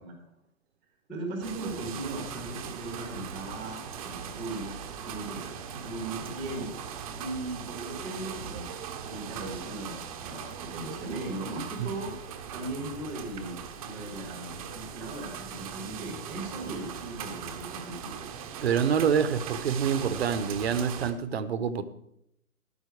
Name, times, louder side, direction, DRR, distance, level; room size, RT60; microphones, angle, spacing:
voice 1, 1.1-6.9 7.2-8.8 9.0-12.1 12.5-18.3, right 2 dB, ahead, -10 dB, 0.5 m, -38 dB
sound 1, 1.4-21.1, right 7 dB, 25° right, 1.0 m, -40 dB
voice 2, 18.6-21.8, right 7 dB, 45° right, 13 dB, 1.1 m, -26 dB
13.5 x 11.5 x 4.8 m, 0.77 s
hypercardioid pair, 150°, 44 cm